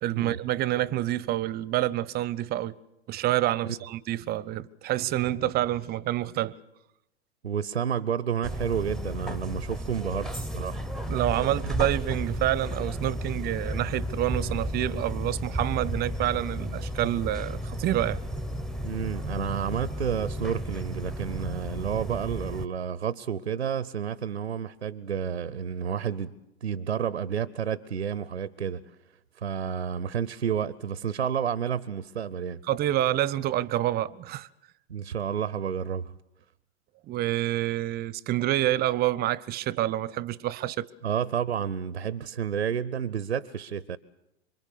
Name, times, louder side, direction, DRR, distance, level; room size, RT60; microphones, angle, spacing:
voice 1, 0.0-2.7 3.1-6.6 11.1-18.2 32.7-34.5 37.1-40.9, right 14 dB, 30° right, 0.8 m, -27 dB
voice 2, 7.4-10.8 11.6-11.9 18.8-26.3 26.6-28.8 29.4-32.6 34.9-36.1 41.0-44.0, right 8 dB, 85° right, 0.8 m, -30 dB
sound 1, 8.4-22.7, equal, ahead, 1.0 m, -33 dB
26.5 x 24.0 x 6.7 m
figure-of-eight pair, 95°, 33 cm